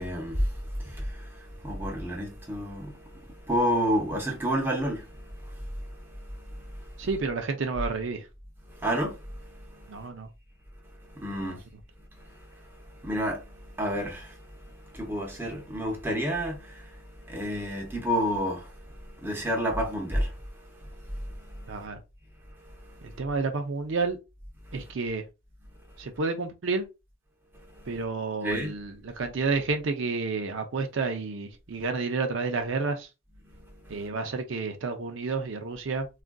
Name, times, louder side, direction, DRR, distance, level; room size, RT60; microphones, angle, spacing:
voice 1, 0.0-7.1 8.7-10.1 11.0-11.6 12.2-21.9 22.6-23.2 24.7-24.9 27.7-28.0 28.4-28.8 33.4-34.1, equal, 10° right, 0.7 m, -32 dB
voice 2, 7.0-8.3 9.9-10.3 11.4-11.6 21.7-22.0 23.0-24.2 24.7-25.2 26.0-26.8 27.9-33.1 33.9-36.1, right 4 dB, 65° right, 0.5 m, -30 dB
3.7 x 2.4 x 2.2 m
head